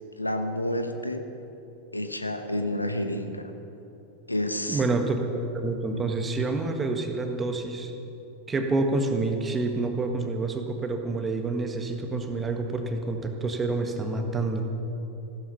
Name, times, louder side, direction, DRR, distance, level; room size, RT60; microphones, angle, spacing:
voice 1, 0.2-1.3 1.9-3.5 4.3-4.8 5.9-6.0, left 1 dB, 85° left, 7 dB, 1.0 m, -29 dB
voice 2, 4.7-7.9 8.5-14.7, right 3 dB, 20° right, 5 dB, 1.5 m, -28 dB
15.5 x 12.5 x 5.7 m, 2.9 s
figure-of-eight pair, 90°, 0 cm